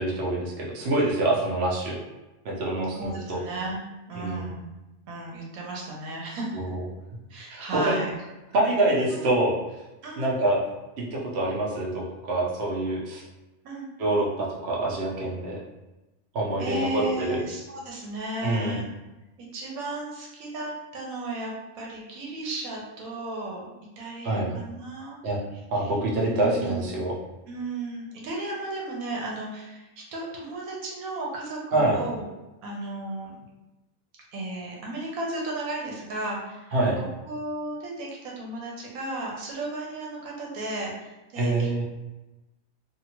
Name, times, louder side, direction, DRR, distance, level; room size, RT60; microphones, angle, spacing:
voice 1, 0.0-2.0 2.4-3.4 4.1-4.5 6.5-6.8 7.5-8.0 8.5-9.6 10.2-10.6 11.0-13.2 14.0-15.6 16.3-17.4 18.4-18.8 24.2-24.5 25.2-25.4 25.7-27.1 31.7-32.0 36.7-37.0 41.4-41.8, right 2 dB, 55° right, -4 dB, 0.9 m, -26 dB
voice 2, 2.9-4.6 5.1-6.6 7.3-8.1 9.1-9.3 10.0-10.3 13.6-13.9 16.6-18.9 19.4-23.7 24.0-25.2 25.5-25.9 26.4-27.0 27.5-32.2 32.6-33.4 34.3-36.7 37.3-41.8, right 2 dB, 90° right, -2 dB, 1.2 m, -34 dB
2.7 x 2.4 x 2.9 m, 1.0 s
omnidirectional pair, 1.5 m